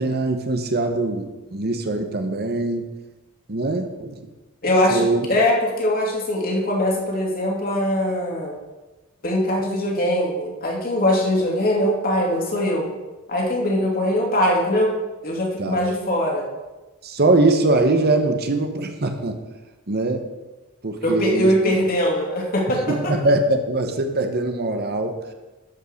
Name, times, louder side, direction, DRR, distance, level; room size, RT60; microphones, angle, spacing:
voice 1, 0.0-2.9 3.5-4.2 4.9-5.3 15.6-15.8 17.0-19.4 19.9-20.2 20.8-21.5 22.9-25.2, right 2 dB, 45° right, 6 dB, 1.0 m, -22 dB
voice 2, 4.6-8.5 9.2-12.8 13.3-14.9 15.2-16.5 21.0-23.1, left 1 dB, 45° left, -1 dB, 2.7 m, -21 dB
12.0 x 5.4 x 6.4 m, 1.1 s
head